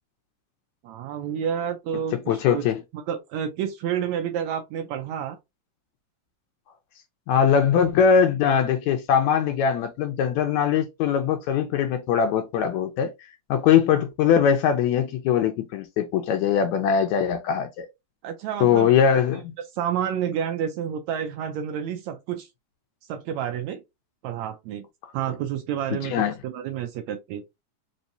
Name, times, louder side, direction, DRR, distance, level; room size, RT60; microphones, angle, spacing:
voice 1, 0.8-2.6 2.9-5.4 18.2-18.9 19.7-22.5 23.1-23.8 24.2-24.9 25.1-26.1 26.4-27.4, right 9 dB, 75° right, 1.7 m, -29 dB
voice 2, 2.1-2.8 7.3-13.1 13.5-17.9 18.6-19.5 25.9-26.4, left 7 dB, 75° left, 1.8 m, -21 dB
5.4 x 2.8 x 2.6 m
omnidirectional pair, 3.7 m